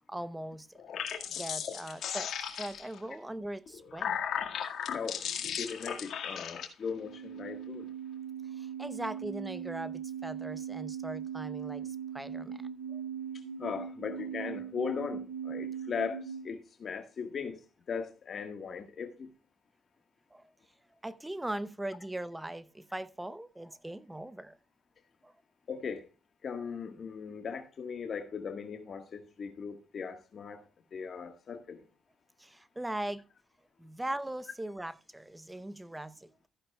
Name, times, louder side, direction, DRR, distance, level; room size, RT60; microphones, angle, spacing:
voice 1, 0.1-0.8 1.4-2.3 2.6-4.2 8.6-11.8 12.1-12.5 12.9-13.0 20.3-20.4 21.0-24.6 25.2-25.3 32.4-33.2 33.8-36.5, right 1 dB, 10° right, 0.8 m, -40 dB
sound 1, 0.8-3.0 3.7-6.7, left 8 dB, 70° left, 1.9 m, -36 dB
voice 2, 4.8-7.9 13.6-17.6 17.9-19.3 25.7-26.1 26.4-30.6 30.9-31.8, left 6 dB, 50° left, 1.5 m, -38 dB
sound 2, 6.9-16.5, right 8 dB, 70° right, 3.5 m, -40 dB
14.5 x 10.0 x 2.3 m
cardioid pair, 90°, 0 cm